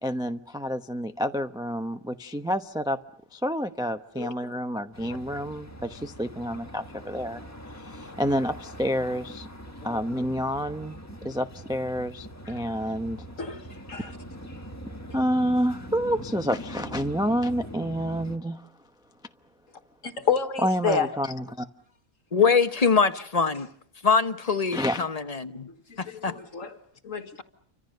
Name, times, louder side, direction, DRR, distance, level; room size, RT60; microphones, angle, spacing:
voice 1, 0.0-3.0 3.3-7.4 7.7-9.5 9.8-13.2 14.0-14.1 15.1-18.7 20.6-21.7 24.7-25.0, equal, 5° right, 0.9 m, -29 dB
sound 1, 4.9-18.4, equal, 10° left, 1.5 m, -42 dB
voice 2, 20.0-21.1 25.9-26.7 27.0-27.4, left 6 dB, 70° left, 1.9 m, -29 dB
voice 3, 22.3-23.7 24.0-25.7 26.0-26.3, left 5 dB, 30° left, 1.2 m, -23 dB
30.0 x 25.5 x 6.7 m
omnidirectional pair, 1.4 m